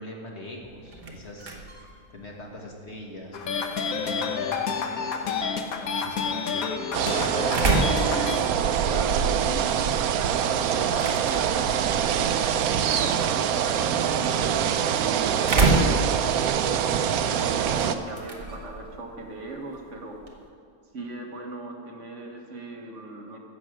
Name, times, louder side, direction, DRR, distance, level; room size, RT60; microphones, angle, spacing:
voice 1, 0.0-1.6 2.1-7.5, left 1 dB, 50° left, 0 dB, 1.8 m, -43 dB
sound 1, 0.6-20.5, right 2 dB, 40° right, 1.2 m, -32 dB
sound 2, 3.3-8.4, left 5 dB, 80° left, 1.4 m, -29 dB
sound 3, 6.9-18.0, right 8 dB, 80° right, 1.1 m, -24 dB
voice 2, 8.8-12.3 12.9-16.3 17.4-20.2 20.9-23.4, right 2 dB, 60° right, 1 dB, 1.6 m, -39 dB
14.0 x 7.7 x 6.3 m, 2.2 s
omnidirectional pair, 1.5 m